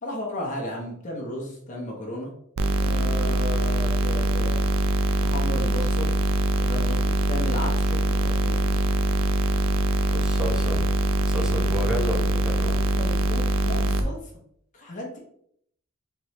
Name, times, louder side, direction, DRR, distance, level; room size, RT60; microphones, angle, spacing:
voice 1, 0.0-2.3 2.8-4.6 5.2-6.2 6.6-8.9 12.7-14.3 14.7-15.2, left 1 dB, 40° left, -2 dB, 1.1 m, -34 dB
sound 1, 2.6-14.0, right 1 dB, 85° right, 0.5 m, -23 dB
voice 2, 10.1-10.8 11.2-12.8, equal, 5° right, -1 dB, 0.9 m, -30 dB
4.3 x 3.3 x 3.1 m, 0.69 s
head